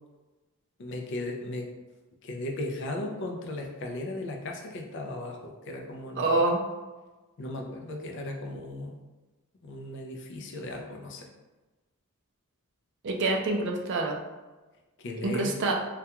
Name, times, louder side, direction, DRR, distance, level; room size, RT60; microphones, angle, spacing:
voice 1, 0.8-1.7 2.2-6.5 7.4-9.0 9.6-11.3 15.0-15.6, left 1 dB, 55° left, 2 dB, 0.4 m, -36 dB
voice 2, 6.2-6.6 13.0-14.2 15.2-15.7, right 2 dB, 55° right, 1 dB, 0.4 m, -26 dB
2.3 x 2.2 x 2.8 m, 1.2 s
head